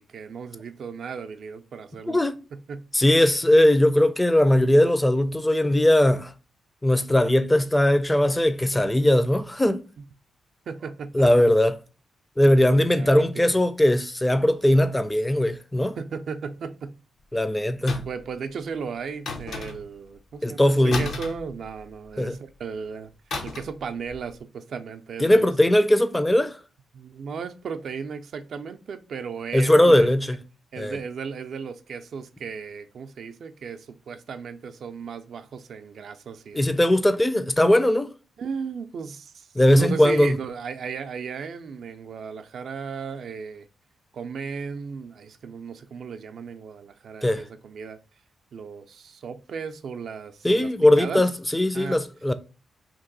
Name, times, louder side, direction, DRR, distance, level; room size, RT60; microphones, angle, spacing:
voice 1, 0.0-2.2 2.5-2.8 10.0-10.1 10.7-11.3 12.5-13.6 16.0-16.9 18.1-23.1 23.4-25.5 26.9-30.4 30.7-36.7 38.4-43.7 44.1-48.0 48.5-50.7 51.0-51.2 51.7-52.0, right 5 dB, 70° right, 0.3 m, -35 dB
voice 2, 2.1-2.4 2.9-6.3 6.8-9.8 11.1-11.8 12.4-15.9 17.3-18.1 20.4-21.1 22.2-22.4 25.2-26.6 29.5-30.4 30.8-31.0 36.5-38.1 39.6-40.4 47.2-47.4 50.4-52.3, left 1 dB, 15° left, 0.4 m, -19 dB
sound 1, 17.9-18.3 19.3-20.0 20.9-22.1 23.3-23.8 24.1-24.3, left 3 dB, 75° left, 0.6 m, -34 dB
2.9 x 2.6 x 3.7 m
cardioid pair, 65°, 0 cm